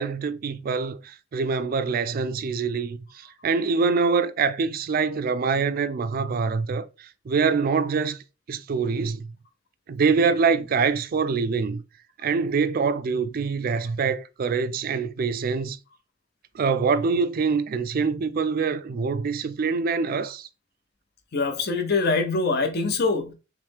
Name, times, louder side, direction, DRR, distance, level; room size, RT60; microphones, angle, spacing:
voice 1, 0.0-8.2 8.5-9.2 9.9-11.8 12.2-15.8 16.5-20.5, right 5 dB, 50° right, 0.4 m, -25 dB
voice 2, 21.3-23.3, left 3 dB, 55° left, 0.7 m, -24 dB
3.2 x 3.1 x 3.5 m
head